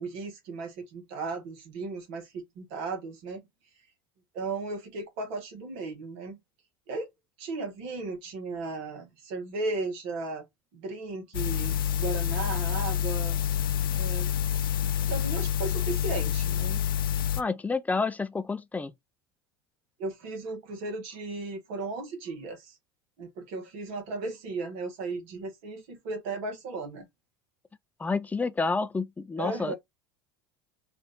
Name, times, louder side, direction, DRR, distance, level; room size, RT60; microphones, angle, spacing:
voice 1, 0.0-3.4 4.3-6.4 6.9-7.1 7.4-10.4 10.7-13.4 13.9-14.3 14.8-16.8 20.0-22.8 23.2-27.0 29.4-29.7, right 3 dB, 60° right, 1.4 m, -36 dB
sound 1, 11.3-17.4, left 10 dB, 75° left, 0.4 m, -28 dB
voice 2, 17.4-18.9 28.0-29.7, left 4 dB, 15° left, 0.5 m, -29 dB
4.8 x 2.6 x 3.8 m
hypercardioid pair, 80°, 12 cm